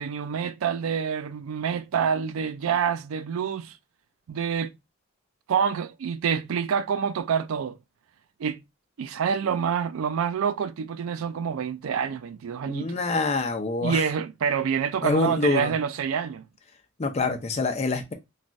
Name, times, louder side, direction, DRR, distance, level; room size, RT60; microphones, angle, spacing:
voice 1, 0.0-3.8 4.3-4.8 5.5-7.8 8.4-8.6 9.0-13.0 13.8-16.4, right 7 dB, 70° right, 0.3 m, -27 dB
voice 2, 12.7-14.0 15.0-15.7 17.0-18.1, left 3 dB, 30° left, 0.4 m, -26 dB
3.1 x 2.3 x 2.5 m
head